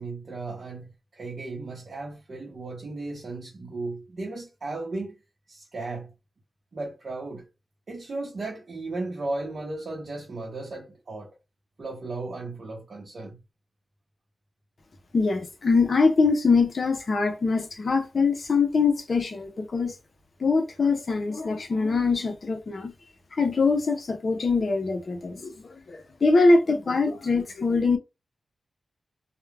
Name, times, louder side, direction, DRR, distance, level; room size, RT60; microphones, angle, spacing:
voice 1, 0.0-5.2 5.5-6.1 6.7-7.5 7.9-11.4 11.8-13.4, right 2 dB, 50° right, 0.7 m, -35 dB
voice 2, 15.1-19.9 20.4-22.9 23.3-25.6 25.9-28.0, left 4 dB, 50° left, 0.6 m, -23 dB
2.3 x 2.1 x 3.2 m
wide cardioid pair, 125°, 0 cm